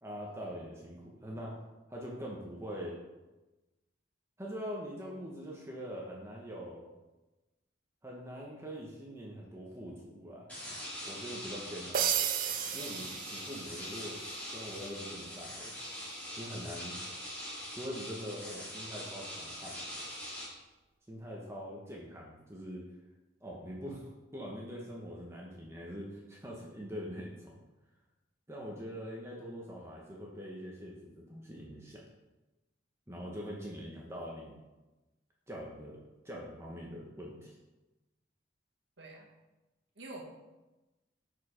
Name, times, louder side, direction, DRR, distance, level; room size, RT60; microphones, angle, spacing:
voice 1, 0.0-1.6 1.9-3.0 4.4-6.9 8.0-10.5 11.1-12.1 12.7-15.7 16.4-17.0 17.7-19.8 21.1-22.9 23.4-27.5 28.5-32.0 33.1-34.6 35.5-37.5, equal, 15° right, -3 dB, 0.9 m, -43 dB
sound 1, 10.5-20.5, equal, 10° left, 2.4 m, -43 dB
sound 2, 11.9-14.0, right 9 dB, 45° right, 0.4 m, -33 dB
voice 2, 39.0-39.3 39.9-40.2, right 2 dB, 70° right, 0 dB, 1.4 m, -47 dB
6.4 x 4.7 x 5.0 m, 1.1 s
head